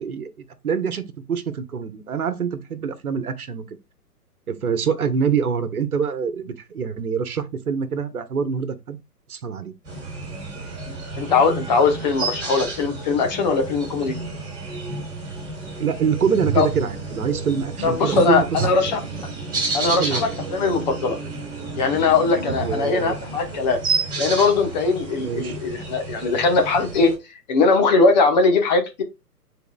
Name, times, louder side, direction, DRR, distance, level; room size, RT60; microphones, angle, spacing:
voice 1, 0.0-3.6 4.5-9.0 9.3-9.7 15.8-18.9 19.7-20.2 22.6-23.2 25.2-25.6, right 6 dB, 65° right, 1.2 m, -25 dB
sound 1, 9.9-27.2, right 4 dB, 10° right, 4.3 m, -30 dB
voice 2, 11.2-14.2 16.5-16.7 17.8-19.0 19.7-21.2 21.8-23.8 24.2-27.1 27.5-29.0, left 4 dB, 25° left, 1.0 m, -20 dB
10.5 x 3.9 x 2.3 m
figure-of-eight pair, 135°, 47 cm